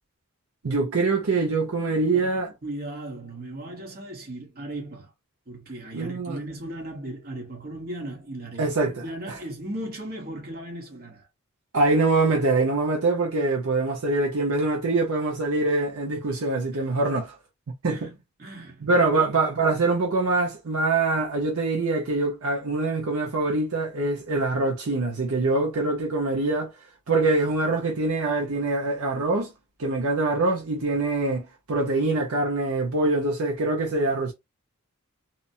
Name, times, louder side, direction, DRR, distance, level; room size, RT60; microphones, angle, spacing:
voice 1, 0.6-2.5 5.9-6.4 8.6-9.4 11.7-17.3 17.8-18.1 18.8-26.7 27.1-29.5 29.8-34.3, right 3 dB, 75° right, 0.7 m, -24 dB
voice 2, 2.1-5.1 5.5-11.3 17.9-18.1 18.4-19.3, right 1 dB, 45° right, 1.0 m, -37 dB
2.9 x 2.1 x 2.6 m
head